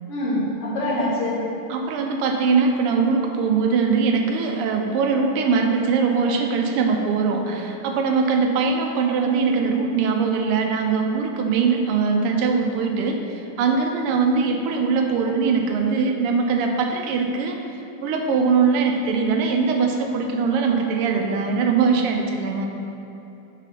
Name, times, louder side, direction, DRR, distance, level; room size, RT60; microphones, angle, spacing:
voice 1, 0.1-1.4, left 1 dB, 85° left, -7 dB, 2.4 m, -24 dB
voice 2, 1.7-17.6 18.0-22.7, right 5 dB, 90° right, 3 dB, 1.6 m, -21 dB
5.7 x 4.1 x 5.3 m, 2.9 s
omnidirectional pair, 2.4 m